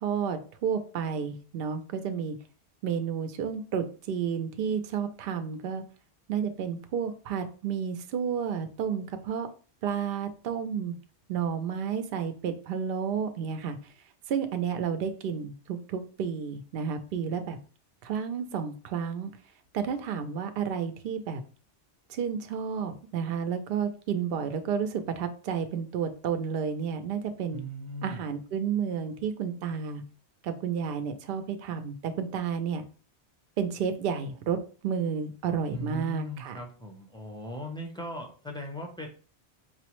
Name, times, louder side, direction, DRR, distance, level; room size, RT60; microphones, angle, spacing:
voice 1, 0.0-2.4 2.8-5.8 6.3-9.5 9.8-10.9 11.3-13.8 14.3-17.6 18.0-19.3 19.7-21.4 22.1-27.6 28.0-30.0 30.4-32.8 33.6-34.6 34.8-36.6, right 7 dB, 65° right, 8 dB, 0.7 m, -31 dB
voice 2, 27.5-28.3 35.7-39.1, equal, 5° left, 0 dB, 0.4 m, -38 dB
4.7 x 2.0 x 2.9 m, 0.39 s
omnidirectional pair, 1.1 m